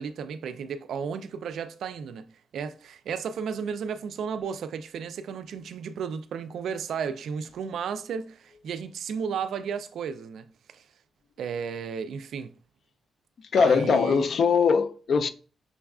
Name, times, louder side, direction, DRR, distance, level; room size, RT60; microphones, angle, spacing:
voice 1, 0.0-2.3 2.5-10.8 11.4-12.5 13.6-14.3, right 6 dB, 80° right, 0.3 m, -33 dB
voice 2, 13.5-15.3, left 5 dB, 60° left, 0.4 m, -21 dB
6.0 x 2.3 x 2.3 m
cardioid pair, 70°, 0 cm